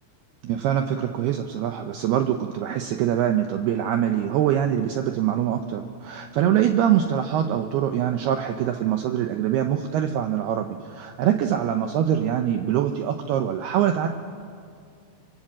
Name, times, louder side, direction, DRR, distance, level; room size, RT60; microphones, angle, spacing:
voice 1, 0.4-14.1, right 10 dB, 85° right, 6 dB, 2.2 m, -24 dB
25.5 x 24.5 x 7.6 m, 2.2 s
omnidirectional pair, 5.7 m